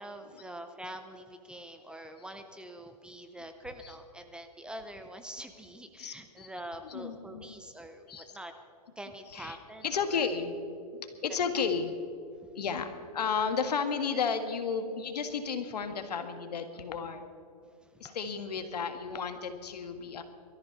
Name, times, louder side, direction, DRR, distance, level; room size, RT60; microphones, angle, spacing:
voice 1, 0.0-8.5 9.0-10.3 11.5-11.6 17.6-18.2, right 1 dB, 5° right, 7 dB, 0.6 m, -45 dB
voice 2, 6.0-6.5 6.8-7.5 8.1-8.3 9.3-9.6 9.8-10.5 11.0-11.9 12.6-17.3 18.0-20.2, left 6 dB, 75° left, 8 dB, 1.8 m, -33 dB
22.5 x 13.5 x 4.1 m, 2.4 s
hypercardioid pair, 140°, 21 cm